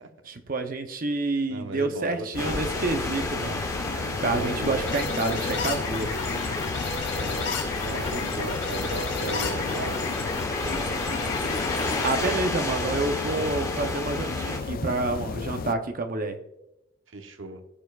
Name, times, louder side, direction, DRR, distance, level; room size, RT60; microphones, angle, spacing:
voice 1, 0.3-3.6 4.2-6.1 12.0-16.4, right 2 dB, 45° right, 6 dB, 0.8 m, -28 dB
voice 2, 1.5-2.9 4.0-4.9 7.2-7.4 7.8-10.0 12.2-12.4 12.8-13.0 13.3-13.5 17.1-17.6, right 2 dB, 75° right, 6 dB, 1.0 m, -36 dB
sound 1, 2.3-15.7, left 5 dB, 45° left, 0.3 m, -34 dB
sound 2, 2.4-14.6, left 2 dB, 15° left, 1.0 m, -32 dB
sound 3, 4.9-12.3, left 4 dB, 90° left, 3.7 m, -33 dB
15.0 x 6.8 x 2.4 m, 0.89 s
head